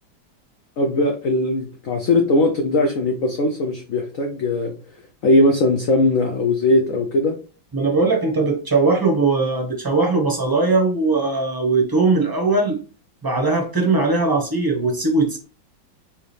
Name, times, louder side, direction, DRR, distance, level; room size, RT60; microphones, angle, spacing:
voice 1, 0.8-4.7 5.2-7.3, left 2 dB, 85° left, 3 dB, 0.7 m, -19 dB
voice 2, 7.7-12.8 13.2-15.4, right 3 dB, 20° right, 0 dB, 0.5 m, -19 dB
4.7 x 2.8 x 3.3 m, 0.35 s
omnidirectional pair, 2.2 m